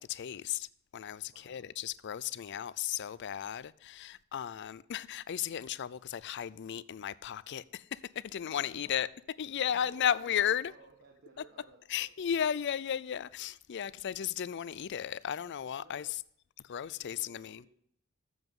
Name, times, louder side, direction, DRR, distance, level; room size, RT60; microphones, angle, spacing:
voice 1, 0.0-9.1 9.4-10.7 11.9-16.2 16.6-17.6, left 9 dB, 55° left, 0.4 m, -35 dB
voice 2, 1.3-1.7 8.5-9.1 9.7-10.3 10.6-12.4 13.8-14.2 15.8-16.0 16.9-17.7, right 3 dB, 50° right, 1.3 m, -59 dB
12.5 x 7.9 x 3.7 m
head